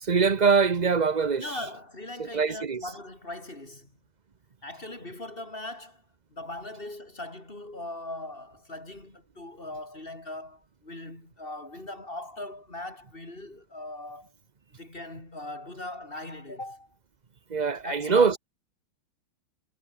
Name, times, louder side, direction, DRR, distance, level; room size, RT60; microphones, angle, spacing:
voice 1, 0.0-1.4 2.2-2.8 17.5-18.4, right 5 dB, 90° right, 0.3 m, -23 dB
voice 2, 1.4-3.9 4.6-6.0 6.3-14.3 14.8-16.9 17.8-18.4, left 2 dB, 25° left, 5.3 m, -39 dB
omnidirectional pair, 2.4 m